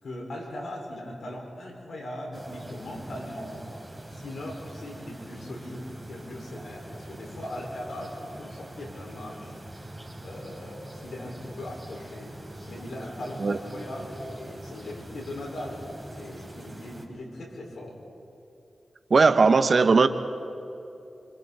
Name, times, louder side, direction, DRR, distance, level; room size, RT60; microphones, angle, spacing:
voice 1, 0.0-3.7 4.1-9.6 10.2-12.3 12.6-18.0, left 1 dB, 80° left, -1 dB, 5.2 m, -39 dB
sound 1, 2.3-17.1, right 1 dB, 15° right, 4.7 m, -43 dB
voice 2, 19.1-20.1, right 4 dB, 60° right, 9 dB, 1.1 m, -18 dB
28.0 x 26.5 x 4.2 m, 2.8 s
cardioid pair, 45°, 0 cm